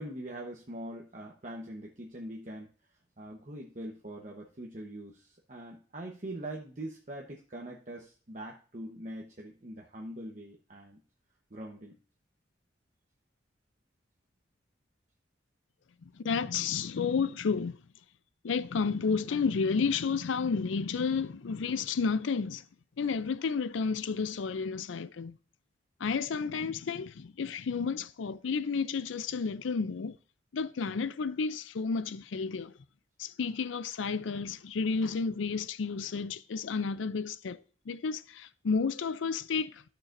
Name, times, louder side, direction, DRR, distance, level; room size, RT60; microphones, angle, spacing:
voice 1, 0.0-2.7 3.2-11.0 11.5-12.0, right 1 dB, 40° right, 1.0 m, -43 dB
voice 2, 16.1-17.8 18.4-22.6 23.0-25.4 26.0-30.2 30.5-32.7 33.2-39.8, left 5 dB, 90° left, 0.5 m, -31 dB
13.0 x 6.7 x 2.6 m
head